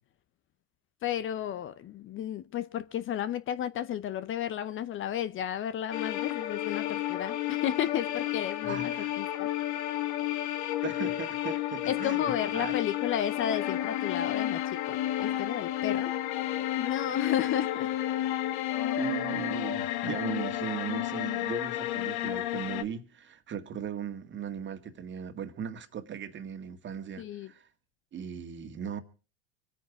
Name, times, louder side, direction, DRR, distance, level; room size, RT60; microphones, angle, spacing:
voice 1, 1.0-9.5 11.9-16.1 16.8-17.9 27.2-27.5, left 10 dB, 35° left, 0.7 m, -33 dB
sound 1, 5.9-22.8, left 13 dB, 65° left, 1.4 m, -31 dB
voice 2, 8.6-9.2 10.8-12.8 19.0-27.7 28.1-29.0, right 7 dB, 35° right, 1.8 m, -38 dB
25.5 x 9.3 x 4.9 m
hypercardioid pair, 100°, 34 cm